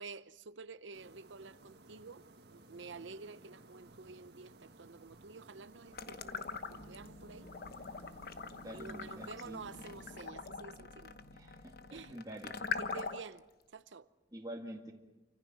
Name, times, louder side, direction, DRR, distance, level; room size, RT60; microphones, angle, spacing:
voice 1, 0.0-2.2 2.7-7.5 8.7-11.1 11.9-12.2 12.8-13.4 13.7-14.1, right 4 dB, 85° right, 0.8 m, -50 dB
sound 1, 0.9-10.3, right 2 dB, 65° right, 1.9 m, -58 dB
sound 2, 5.9-7.1 7.5-13.4, left 5 dB, 55° left, 1.1 m, -42 dB
sound 3, 6.7-12.2, left 2 dB, 80° left, 1.2 m, -55 dB
voice 2, 8.6-9.7 11.3-12.5 14.3-14.9, right 1 dB, 20° right, 2.0 m, -47 dB
29.5 x 25.0 x 6.2 m
head